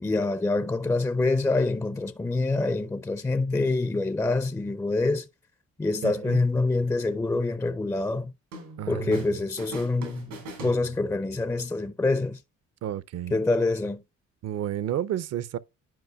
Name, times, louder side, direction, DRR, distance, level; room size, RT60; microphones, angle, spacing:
voice 1, 0.0-5.3 5.8-8.3 8.9-12.4 13.3-14.0, left 3 dB, 10° left, 0.4 m, -26 dB
voice 2, 6.0-6.4 8.8-9.2 12.8-13.3 14.4-15.6, right 11 dB, 55° right, 0.5 m, -31 dB
sound 1, 8.5-9.3 9.6-11.3, right 2 dB, 90° right, 3.3 m, -41 dB
10.5 x 5.0 x 2.2 m
cardioid pair, 90°, 30 cm